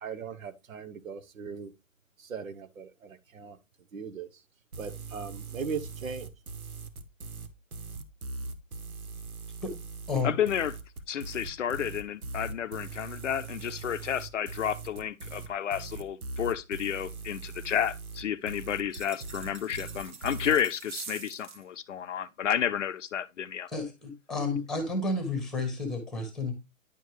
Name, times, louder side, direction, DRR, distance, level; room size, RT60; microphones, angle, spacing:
voice 1, 0.0-1.7 2.3-3.6 3.9-4.3 4.8-6.3, right 5 dB, 70° right, 1.0 m, -38 dB
sound 1, 4.7-20.6, right 3 dB, 85° right, 1.1 m, -40 dB
voice 2, 10.2-10.7 11.1-23.7, left 9 dB, 60° left, 0.6 m, -31 dB
sound 2, 18.9-21.6, right 6 dB, 35° right, 1.0 m, -44 dB
voice 3, 23.7-26.5, left 3 dB, ahead, 1.3 m, -31 dB
10.0 x 4.5 x 3.1 m
hypercardioid pair, 140°, 42 cm